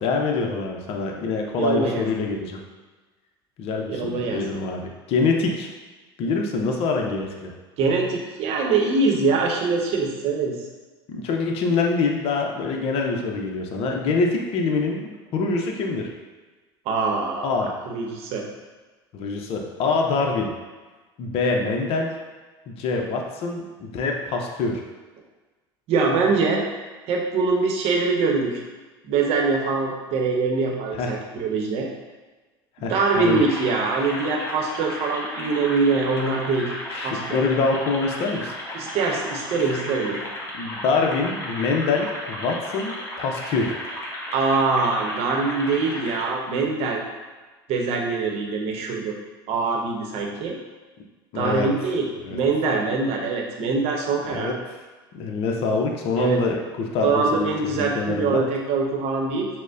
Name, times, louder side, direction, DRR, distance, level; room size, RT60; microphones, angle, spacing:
voice 1, 0.0-2.6 3.6-5.7 6.2-7.5 11.1-16.1 17.4-17.7 19.1-20.5 21.2-22.1 22.7-24.8 31.0-31.1 32.8-33.5 36.9-38.5 40.5-43.7 51.3-51.7 52.2-52.4 54.3-54.6 55.1-58.4, left 4 dB, 50° left, 1 dB, 0.6 m, -25 dB
voice 2, 1.6-2.1 3.9-4.5 7.8-10.6 16.9-18.5 25.9-26.6 27.1-28.6 29.0-31.9 32.8-36.7 37.0-37.4 38.7-40.2 44.3-47.0 47.7-49.2 49.5-50.6 51.3-54.5 56.2-56.4 57.0-59.5, right 4 dB, 55° right, 1 dB, 0.8 m, -23 dB
sound 1, 32.9-46.3, left 1 dB, 20° left, 1.1 m, -34 dB
6.0 x 2.1 x 2.6 m, 1.3 s
hypercardioid pair, 75°, 13 cm